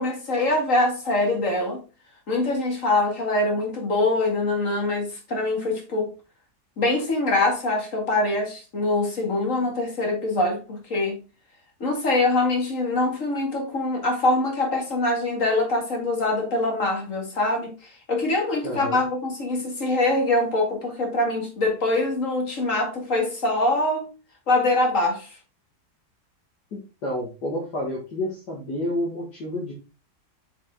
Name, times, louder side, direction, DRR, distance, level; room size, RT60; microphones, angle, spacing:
voice 1, 0.0-1.8 2.3-6.1 6.8-11.2 11.8-17.7 18.1-24.1 24.5-25.3, left 2 dB, 50° left, 2.3 m, -24 dB
voice 2, 18.6-19.0 26.7-29.7, left 1 dB, 75° left, 2.3 m, -30 dB
7.1 x 5.1 x 3.7 m
omnidirectional pair, 1.8 m